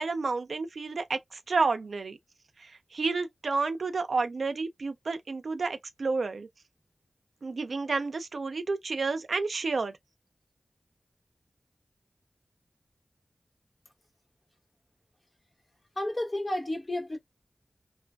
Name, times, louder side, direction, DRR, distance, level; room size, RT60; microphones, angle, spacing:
voice 1, 0.0-2.2 2.6-6.5 7.4-9.9, right 4 dB, 85° right, 0.5 m, -30 dB
voice 2, 16.0-17.2, left 1 dB, 40° left, 1.3 m, -31 dB
2.5 x 2.5 x 2.2 m
wide cardioid pair, 55°, 0 cm